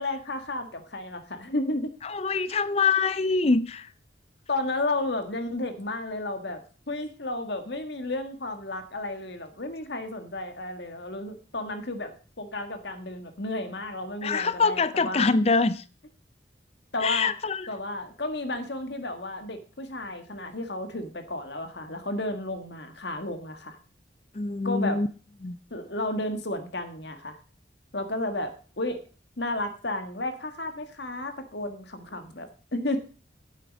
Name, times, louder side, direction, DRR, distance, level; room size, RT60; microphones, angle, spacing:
voice 1, 0.0-1.9 4.5-6.6 6.9-12.1 12.4-15.3 16.9-17.3 17.7-23.8 24.6-25.0 25.7-27.4 27.9-29.0 29.4-33.0, left 2 dB, 60° left, 1.6 m, -32 dB
voice 2, 2.0-3.9 14.2-15.8 17.0-17.7 24.3-25.1 25.4-25.6, left 4 dB, 35° left, 0.5 m, -24 dB
9.4 x 8.3 x 5.1 m
head